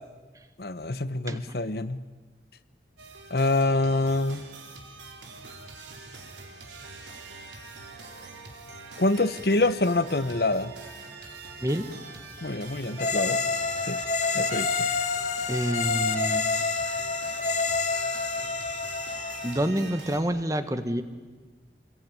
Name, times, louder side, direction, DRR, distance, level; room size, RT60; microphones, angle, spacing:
voice 1, 0.6-2.0 3.3-4.4 9.0-10.7 12.4-13.4 13.9-14.0 14.3-14.9, left 2 dB, 60° left, 13 dB, 1.0 m, -26 dB
sound 1, 3.0-20.2, right 3 dB, 85° right, 4.0 m, -44 dB
sound 2, 13.0-19.7, left 4 dB, 40° left, 2.6 m, -28 dB
voice 2, 15.5-16.5 19.4-21.0, equal, 20° right, 10 dB, 1.4 m, -27 dB
28.5 x 22.0 x 9.5 m, 1.4 s
head